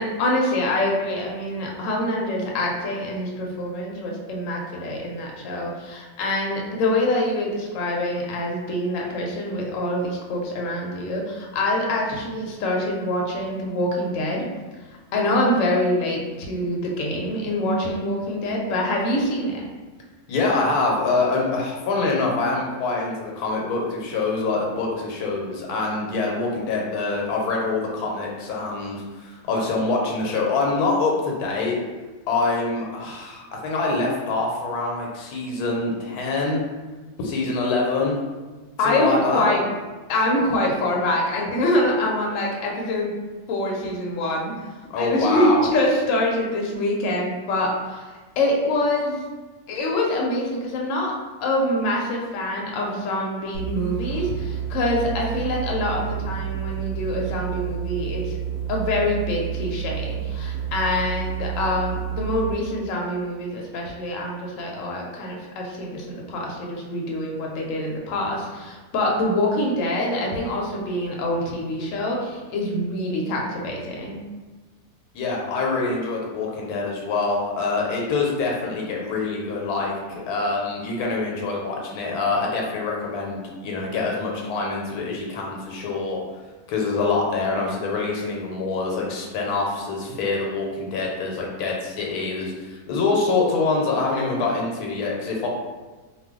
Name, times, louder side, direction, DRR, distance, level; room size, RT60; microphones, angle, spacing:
voice 1, 0.0-14.5 15.1-19.6 38.8-39.6 40.1-43.1 43.5-44.5 45.0-48.1 48.4-49.2 49.7-51.1 51.4-58.4 58.7-74.2, left 1 dB, 65° left, -1 dB, 0.9 m, -25 dB
voice 2, 20.3-31.8 32.3-36.6 37.2-38.2 38.8-39.5 44.9-45.7 75.1-86.2 86.7-95.5, left 3 dB, 85° left, -1 dB, 1.1 m, -25 dB
sound 1, 53.5-62.7, right 9 dB, 80° right, 1.0 m, -30 dB
2.4 x 2.2 x 3.5 m, 1.3 s
omnidirectional pair, 1.6 m